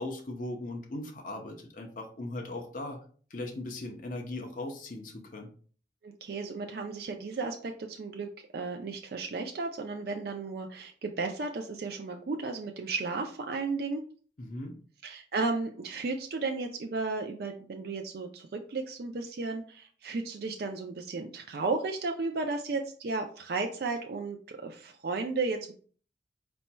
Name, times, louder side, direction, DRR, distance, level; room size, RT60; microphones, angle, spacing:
voice 1, 0.0-3.0 3.3-5.5 14.4-14.8, left 2 dB, 45° left, 2 dB, 0.7 m, -38 dB
voice 2, 6.0-8.3 8.5-14.0 15.0-25.7, right 3 dB, 60° right, 3 dB, 0.4 m, -34 dB
4.3 x 4.1 x 2.2 m, 0.43 s
head